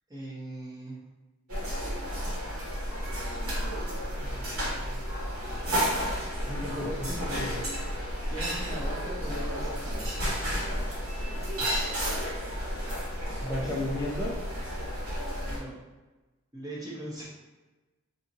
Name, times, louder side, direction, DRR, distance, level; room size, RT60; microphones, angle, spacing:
voice 1, 0.1-1.0 4.2-5.0 8.3-10.2 11.6-12.2 13.6-14.0 15.5-15.8 16.5-17.2, right 1 dB, 20° right, -6 dB, 0.9 m, -41 dB
sound 1, 1.5-15.6, equal, 85° right, 1.2 m, -32 dB
voice 2, 6.4-7.6 13.4-14.4, left 1 dB, 10° left, -8 dB, 0.4 m, -33 dB
2.6 x 2.6 x 4.0 m, 1.2 s
head